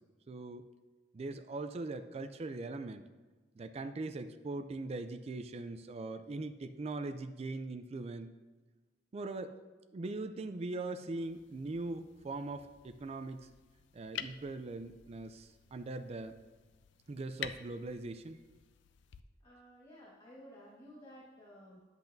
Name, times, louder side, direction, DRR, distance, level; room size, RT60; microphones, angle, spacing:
voice 1, 0.3-0.6 1.1-3.0 3.6-8.3 9.1-9.6 9.9-13.5 13.9-16.4 17.1-18.4, right 2 dB, 35° right, 9 dB, 0.4 m, -41 dB
sound 1, 11.2-19.2, left 9 dB, 70° left, 0.4 m, -50 dB
voice 2, 19.4-21.9, equal, 30° left, -6 dB, 1.5 m, -54 dB
10.5 x 8.1 x 2.6 m, 1.3 s
head